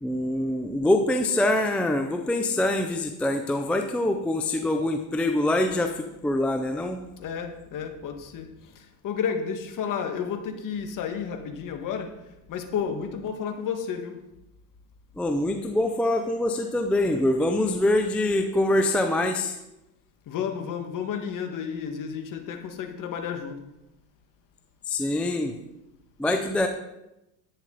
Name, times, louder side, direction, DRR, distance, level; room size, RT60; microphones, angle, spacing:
voice 1, 0.0-7.0 15.2-19.6 24.9-25.5 26.2-26.7, left 1 dB, 5° left, 5 dB, 0.3 m, -24 dB
voice 2, 7.2-12.1 12.5-14.1 20.3-23.6, left 7 dB, 40° left, 5 dB, 1.9 m, -32 dB
11.0 x 9.0 x 4.0 m, 0.92 s
supercardioid pair, 110°, 49 cm